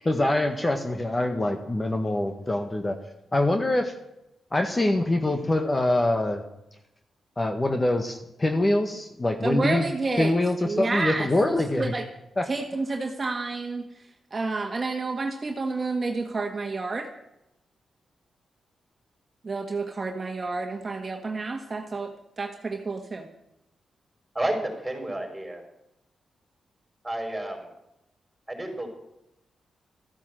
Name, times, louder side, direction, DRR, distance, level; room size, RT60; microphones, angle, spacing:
voice 1, 0.0-3.0 3.3-3.9 4.5-6.4 7.4-9.8 10.2-11.9 12.4-12.5, left 1 dB, 25° left, 6 dB, 1.6 m, -24 dB
voice 2, 9.4-10.3 10.6-11.3 11.8-12.0 12.5-13.9 14.3-17.1 19.4-22.1 22.4-23.3, right 3 dB, 40° right, 3 dB, 1.6 m, -29 dB
voice 3, 24.3-25.6 27.0-27.6 28.5-28.9, right 1 dB, 15° right, 3 dB, 5.0 m, -30 dB
14.0 x 9.3 x 7.8 m, 0.86 s
cardioid pair, 55°, 0 cm